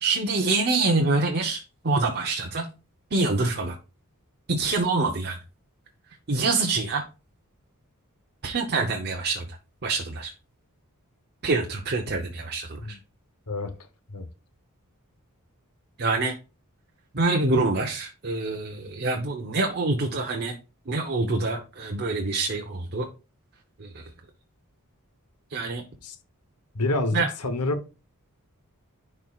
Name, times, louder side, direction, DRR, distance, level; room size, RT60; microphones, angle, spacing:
voice 1, 0.0-2.7 3.1-3.8 4.5-5.4 6.3-7.0 8.4-9.5 9.8-10.3 11.4-13.0 16.0-16.3 17.1-20.5 20.9-23.1 23.8-24.0 25.5-25.8 27.1-27.3, right 3 dB, 50° right, 0.9 m, -26 dB
voice 2, 26.7-27.8, left 2 dB, 85° left, 1.1 m, -27 dB
11.0 x 4.6 x 2.4 m
head